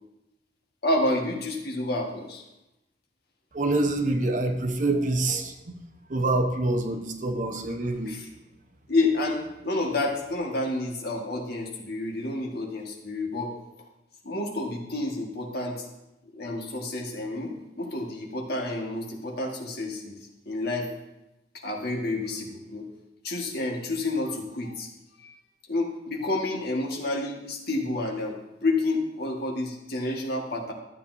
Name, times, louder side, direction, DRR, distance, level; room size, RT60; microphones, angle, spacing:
voice 1, 0.8-2.4 8.1-8.3 8.9-13.6 14.2-15.9 16.3-20.2 20.5-20.9 21.6-22.9 23.2-24.9 25.2-25.3 25.7-30.7, left 2 dB, 60° left, 0 dB, 1.6 m, -29 dB
voice 2, 3.5-5.8 6.1-8.2, right 2 dB, 45° right, 5 dB, 0.9 m, -26 dB
12.5 x 8.4 x 2.7 m, 0.93 s
head